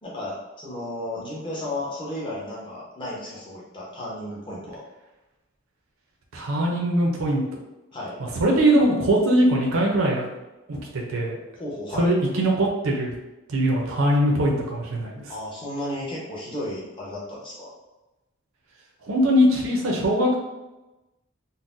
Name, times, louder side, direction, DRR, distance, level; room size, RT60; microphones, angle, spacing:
voice 1, 0.0-4.8 7.9-8.1 11.6-12.1 15.3-17.7, left 1 dB, 25° left, -6 dB, 0.8 m, -33 dB
voice 2, 6.3-7.4 8.2-10.2 10.7-11.4 11.9-13.1 13.5-15.2 19.1-20.4, right 1 dB, 85° right, -2 dB, 0.6 m, -21 dB
3.9 x 2.1 x 2.5 m, 1.0 s
head